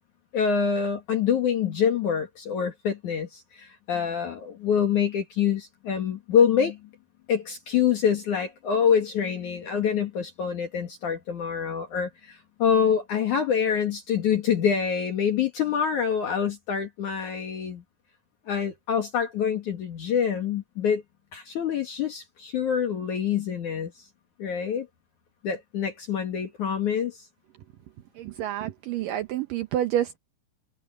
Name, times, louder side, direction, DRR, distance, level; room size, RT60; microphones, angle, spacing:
voice 1, 0.3-6.8 7.3-17.8 18.5-21.0 21.3-23.9 24.4-24.9 25.4-27.3, left 7 dB, 60° left, 3.1 m, -26 dB
voice 2, 28.2-30.2, right 12 dB, 75° right, 2.3 m, -28 dB
omnidirectional pair, 4.3 m